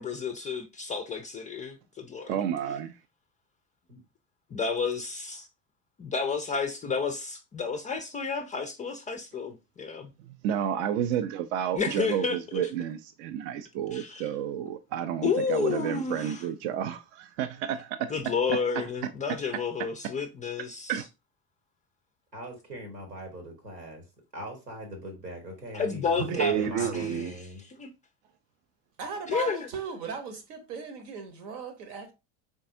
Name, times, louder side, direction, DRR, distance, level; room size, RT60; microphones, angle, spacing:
voice 1, 0.0-2.3 4.5-5.5 6.0-10.1 11.7-12.7 13.9-14.3 15.2-16.5 18.1-21.0 25.7-27.9 29.3-29.7, left 5 dB, 20° left, 0.3 m, -31 dB
voice 2, 2.2-3.0 10.3-18.1 19.0-19.1 20.9-21.1 26.3-27.3, right 9 dB, 50° right, 0.5 m, -31 dB
voice 3, 22.3-24.0 24.3-27.6, equal, 85° right, 1.4 m, -40 dB
voice 4, 29.0-32.1, right 5 dB, 70° right, 1.1 m, -37 dB
3.8 x 3.5 x 2.6 m
figure-of-eight pair, 65°, 47 cm